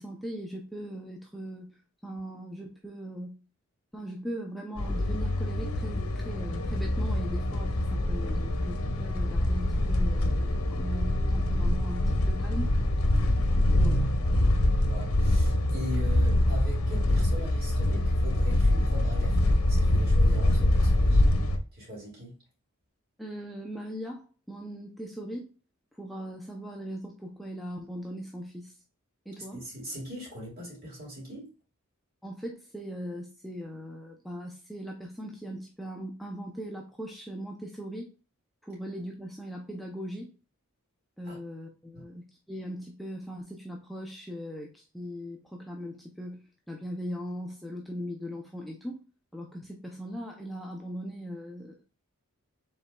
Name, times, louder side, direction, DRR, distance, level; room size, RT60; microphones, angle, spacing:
voice 1, 0.0-3.4 3.9-12.7 13.6-14.1 23.2-25.5 25.9-28.8 29.3-29.6 32.2-38.1 38.6-40.3 41.2-49.0 49.3-51.8, equal, ahead, 0.5 m, -39 dB
sound 1, 4.8-21.6, left 1 dB, 75° left, 0.8 m, -25 dB
voice 2, 14.8-21.2 21.7-22.4 29.4-31.5 41.2-41.4 41.9-42.0, equal, 45° right, 2.7 m, -40 dB
5.4 x 3.8 x 2.2 m
head